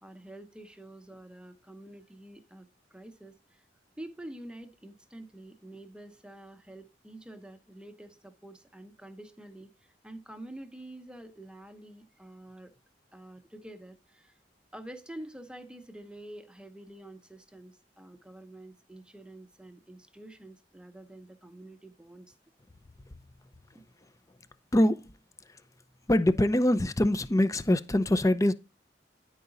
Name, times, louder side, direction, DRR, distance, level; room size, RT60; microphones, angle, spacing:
voice 1, 0.0-3.6 4.0-12.7 13.1-14.4 14.7-22.3 23.7-23.8, right 1 dB, 5° right, 0.8 m, -47 dB
voice 2, 24.7-25.0 26.1-28.5, left 1 dB, 20° left, 0.5 m, -23 dB
9.9 x 4.8 x 4.0 m
head